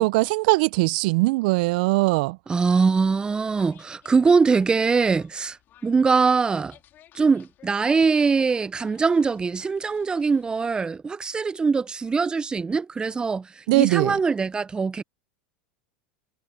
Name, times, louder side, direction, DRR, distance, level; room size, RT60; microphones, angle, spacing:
voice 1, 0.0-2.4 13.7-14.2, right 23 dB, 65° right, 0.4 m, -20 dB
voice 2, 2.5-5.6 5.8-6.7 7.1-15.0, right 4 dB, 15° right, 0.6 m, -22 dB
sound 1, 3.0-10.8, left 12 dB, 40° left, 4.2 m, -56 dB
hypercardioid pair, 95°, 5 cm